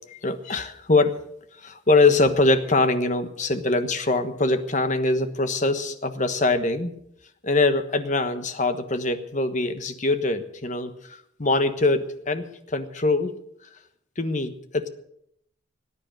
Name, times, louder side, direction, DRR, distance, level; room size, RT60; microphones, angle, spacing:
voice 1, 0.1-1.2 1.6-6.9 7.4-13.3 14.2-14.9, left 2 dB, 40° left, 9 dB, 1.3 m, -23 dB
18.5 x 9.8 x 6.3 m, 0.72 s
head